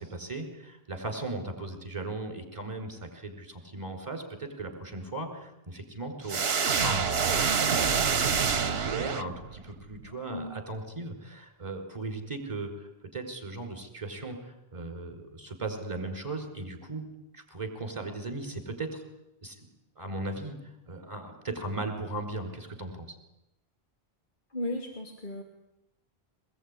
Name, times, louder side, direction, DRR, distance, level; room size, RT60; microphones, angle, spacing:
voice 1, 0.0-17.1 17.3-19.0 19.4-19.7 19.9-23.2, right 2 dB, 30° right, 5 dB, 5.0 m, -37 dB
sound 1, 6.3-9.7, right 6 dB, 70° right, 1.3 m, -26 dB
voice 2, 24.5-25.4, left 1 dB, 50° left, 3 dB, 3.0 m, -35 dB
23.5 x 21.5 x 10.0 m, 0.89 s
omnidirectional pair, 1.1 m